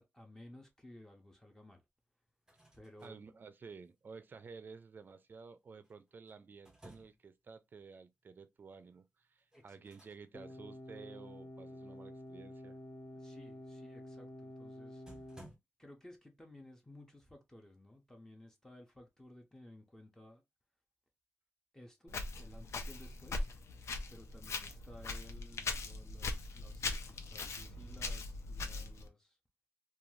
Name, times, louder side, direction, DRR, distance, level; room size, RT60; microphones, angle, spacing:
voice 1, 0.0-1.8 2.7-3.2 9.5-9.8 13.1-15.0 15.8-20.4 21.7-23.5 24.1-29.4, left 1 dB, 10° left, 0.5 m, -56 dB
sound 1, 2.3-3.2 5.8-7.4 9.5-10.2 10.5-10.7 14.5-14.6 15.1-15.6, right 1 dB, 10° right, 0.8 m, -58 dB
voice 2, 3.0-12.8, right 5 dB, 45° right, 0.4 m, -53 dB
sound 2, 10.3-15.4, left 1 dB, 40° left, 0.7 m, -49 dB
Walk footsteps, 22.1-29.1, left 3 dB, 80° left, 0.5 m, -41 dB
2.6 x 2.3 x 3.1 m
wide cardioid pair, 150°, 5 cm